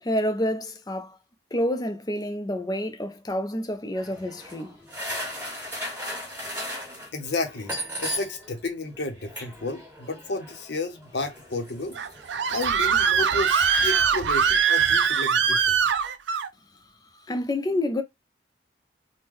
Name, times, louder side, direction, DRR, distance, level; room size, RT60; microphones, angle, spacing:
voice 1, 0.0-1.2 1.5-4.8 17.3-18.0, left 1 dB, 20° left, 0.4 m, -28 dB
sound 1, 3.9-8.6 8.8-13.6, equal, 10° right, 1.6 m, -37 dB
voice 2, 7.1-12.0 12.5-16.1, left 2 dB, 65° left, 0.7 m, -32 dB
Screaming, 12.0-16.5, right 6 dB, 70° right, 0.4 m, -22 dB
3.6 x 2.1 x 3.0 m
head